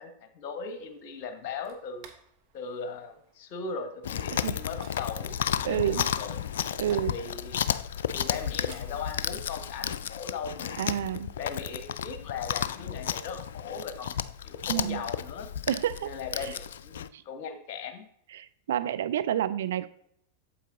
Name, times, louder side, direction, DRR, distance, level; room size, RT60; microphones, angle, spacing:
voice 1, 0.0-2.1 2.5-5.3 5.6-6.4 6.9-7.6 8.1-10.9 11.4-14.1 14.4-15.5 16.0-18.0, left 5 dB, 45° left, 7 dB, 1.2 m, -38 dB
sound 1, 0.6-10.0, right 6 dB, 40° right, 1.2 m, -58 dB
Chewing mastication, 4.0-17.1, left 9 dB, 60° left, 0.3 m, -33 dB
voice 2, 5.6-6.1 6.8-7.1 10.8-11.3 14.7-15.0 15.7-16.6 17.1-17.2 18.3-19.9, right 11 dB, 60° right, 12 dB, 0.3 m, -30 dB
8.7 x 7.4 x 2.6 m, 0.70 s
figure-of-eight pair, 90°, 0 cm